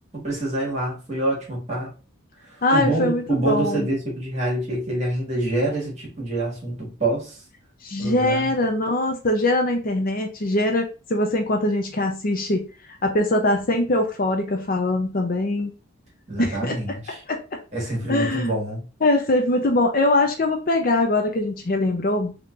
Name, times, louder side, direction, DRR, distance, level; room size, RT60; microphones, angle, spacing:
voice 1, 0.1-1.9 2.7-7.4 8.0-8.5 16.3-17.2 17.7-18.8, right 2 dB, 30° right, -3 dB, 1.6 m, -26 dB
voice 2, 2.6-3.9 7.8-12.7 13.0-15.7 16.4-16.8 17.3-17.4 18.1-18.5 19.0-22.4, left 2 dB, 40° left, 4 dB, 0.5 m, -22 dB
3.7 x 2.9 x 2.5 m, 0.33 s
head